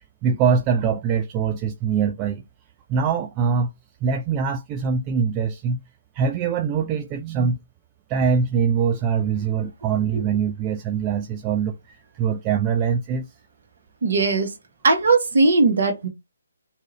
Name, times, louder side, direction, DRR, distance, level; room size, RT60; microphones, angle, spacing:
voice 1, 0.2-2.4 2.9-3.7 4.0-5.8 6.1-7.6 8.1-13.3, right 6 dB, 25° right, 0.3 m, -23 dB
voice 2, 14.0-14.5 14.8-16.1, right 3 dB, 55° right, 1.1 m, -19 dB
2.7 x 2.4 x 2.9 m
figure-of-eight pair, 140°, 0 cm